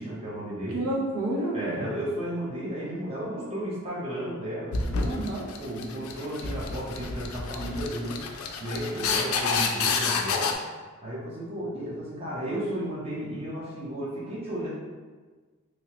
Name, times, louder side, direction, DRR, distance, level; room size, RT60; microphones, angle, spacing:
voice 1, 0.0-0.8 1.5-5.2 5.6-8.2 8.6-10.5 11.0-14.7, right 1 dB, 25° right, -7 dB, 0.8 m, -33 dB
voice 2, 0.7-1.8 5.0-5.5, right 1 dB, 85° right, -4 dB, 0.8 m, -30 dB
sound 1, 4.7-10.5, left 5 dB, 80° left, 0.4 m, -29 dB
3.0 x 2.8 x 2.9 m, 1.4 s
head